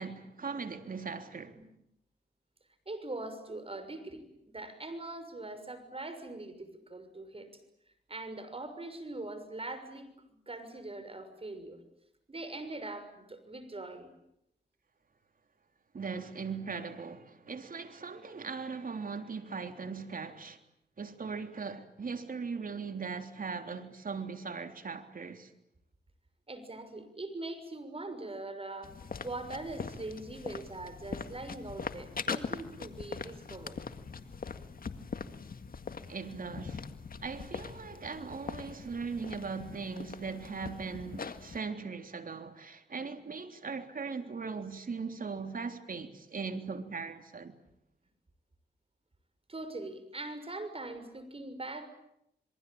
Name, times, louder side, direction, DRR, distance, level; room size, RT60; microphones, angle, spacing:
voice 1, 0.0-1.6 15.9-20.6 21.0-25.5 36.1-36.8 37.2-47.5, right 5 dB, 55° right, 3.5 m, -39 dB
voice 2, 2.9-7.5 8.1-10.1 10.5-11.8 12.3-14.1 26.5-29.0 29.2-33.8 49.5-51.9, right 2 dB, 35° right, 6.3 m, -42 dB
sound 1, 28.8-41.6, left 5 dB, 55° left, 2.0 m, -42 dB
27.0 x 23.5 x 8.8 m
cardioid pair, 55°, 18 cm